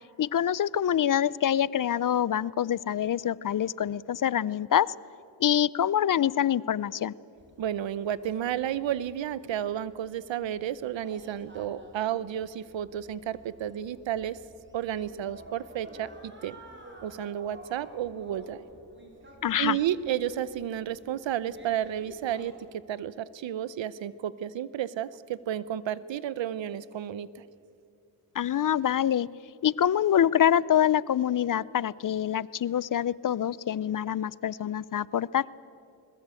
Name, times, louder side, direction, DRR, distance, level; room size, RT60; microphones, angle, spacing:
voice 1, 0.2-4.9 5.4-7.1 19.4-19.8 28.3-29.3 29.6-35.4, left 10 dB, 50° left, 22 dB, 0.5 m, -25 dB
sound 1, 7.4-22.5, right 1 dB, 25° right, 4.8 m, -51 dB
voice 2, 7.6-14.4 14.7-16.6 17.0-18.6 19.6-22.5 22.9-27.4, right 10 dB, 90° right, 18 dB, 0.9 m, -32 dB
21.0 x 21.0 x 8.3 m, 2.6 s
cardioid pair, 80°, 43 cm